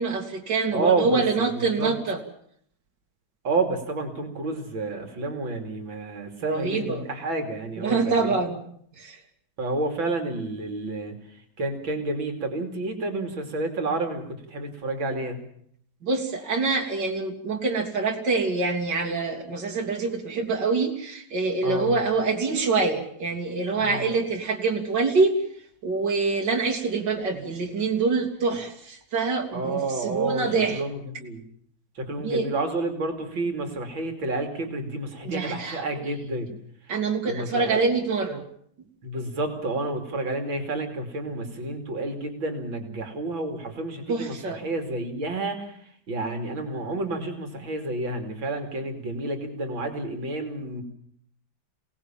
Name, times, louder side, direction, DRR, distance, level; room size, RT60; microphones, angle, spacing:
voice 1, 0.0-2.2 6.4-7.0 7.8-8.6 9.0-9.2 16.0-25.4 25.8-30.8 32.2-32.5 35.2-36.1 36.9-38.4 44.1-44.6, right 4 dB, 60° right, 1 dB, 3.4 m, -25 dB
voice 2, 0.7-1.2 1.8-1.9 3.4-8.4 9.6-15.4 21.6-22.0 23.8-24.0 29.5-31.4 32.0-36.5 37.2-37.8 39.0-50.8, right 2 dB, 75° right, 5 dB, 3.5 m, -30 dB
27.5 x 18.5 x 7.4 m, 0.66 s
omnidirectional pair, 2.2 m